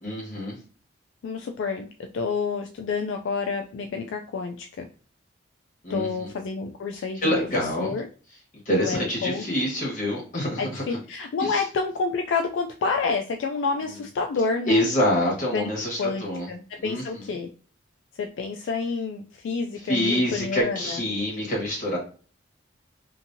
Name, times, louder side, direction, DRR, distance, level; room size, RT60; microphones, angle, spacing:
voice 1, 0.0-0.6 5.8-6.3 7.2-7.9 8.6-10.8 11.4-11.6 14.7-16.5 16.8-17.2 19.9-22.0, equal, 40° left, -3 dB, 1.3 m, -26 dB
voice 2, 1.2-4.9 5.9-8.1 8.7-9.4 10.6-14.9 15.5-15.7 16.0-17.5 18.2-21.0, left 4 dB, 70° left, 4 dB, 0.3 m, -29 dB
2.9 x 2.6 x 2.6 m, 0.40 s
head